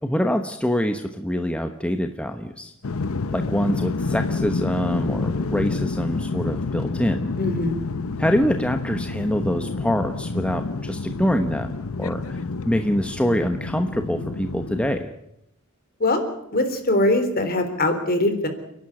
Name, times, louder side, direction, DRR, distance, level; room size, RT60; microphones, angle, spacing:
voice 1, 0.0-2.7 3.3-7.3 8.2-11.7 12.0-15.1, equal, 5° left, 6 dB, 1.0 m, -25 dB
sound 1, 2.8-15.0, left 3 dB, 70° left, 0.7 m, -28 dB
voice 2, 7.4-7.8 16.0-16.2 16.5-18.5, left 2 dB, 45° left, 7 dB, 3.7 m, -22 dB
29.5 x 11.5 x 9.8 m, 0.81 s
head